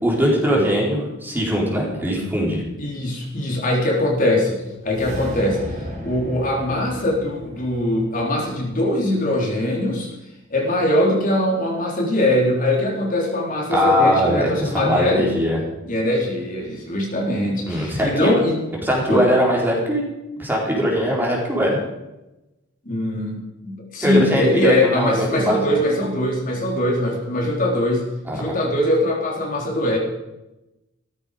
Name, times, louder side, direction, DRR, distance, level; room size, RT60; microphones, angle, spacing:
voice 1, 0.0-2.6 13.7-15.6 17.7-18.3 18.8-20.1 20.4-21.8 24.0-25.6 28.3-28.5, equal, 10° right, -3 dB, 4.2 m, -20 dB
voice 2, 2.8-10.1 10.5-15.3 15.8-18.6 19.1-19.3 22.9-28.0 28.3-30.0, left 1 dB, 40° left, -2 dB, 3.8 m, -22 dB
sound 1, 4.8-9.2, equal, 35° right, 3.2 m, -35 dB
16.0 x 14.0 x 5.1 m, 0.97 s
head